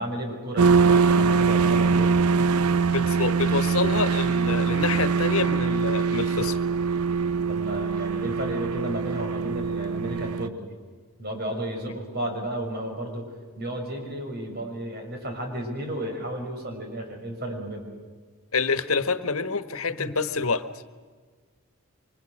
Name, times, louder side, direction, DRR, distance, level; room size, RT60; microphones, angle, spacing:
voice 1, 0.0-2.1 7.5-10.7 11.2-13.3 13.6-17.9 20.0-20.1, right 1 dB, 45° right, 3 dB, 6.0 m, -33 dB
sound 1, 0.6-10.5, right 5 dB, 90° right, 0.6 m, -23 dB
voice 2, 2.9-6.6 18.5-20.7, left 4 dB, 75° left, 11 dB, 1.4 m, -27 dB
29.0 x 25.0 x 6.4 m, 1.5 s
head